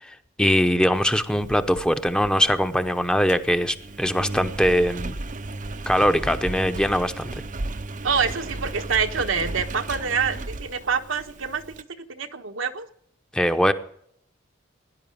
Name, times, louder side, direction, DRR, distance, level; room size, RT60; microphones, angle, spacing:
voice 1, 0.0-5.2 5.9-7.4 13.3-13.7, equal, 5° left, 8 dB, 0.8 m, -22 dB
Engine, 0.9-11.8, right 2 dB, 40° right, 0.7 m, -35 dB
voice 2, 8.0-11.6 12.0-12.9, right 6 dB, 80° right, 6 dB, 1.3 m, -26 dB
17.5 x 11.0 x 7.4 m, 0.67 s
head